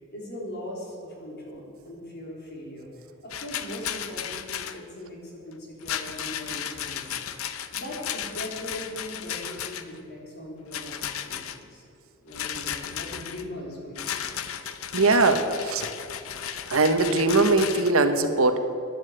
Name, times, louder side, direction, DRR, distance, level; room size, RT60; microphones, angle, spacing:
voice 1, 0.0-11.0 11.2-11.8 12.2-14.2, left 1 dB, 55° left, -2 dB, 3.7 m, -40 dB
Rattle, 3.3-4.8 5.8-10.0 10.7-11.6 12.3-13.4 14.0-17.9, left 9 dB, 85° left, 0.7 m, -34 dB
voice 2, 14.9-15.9 16.7-18.6, right 3 dB, 85° right, 8 dB, 1.2 m, -21 dB
11.5 x 11.0 x 8.0 m, 2.6 s
head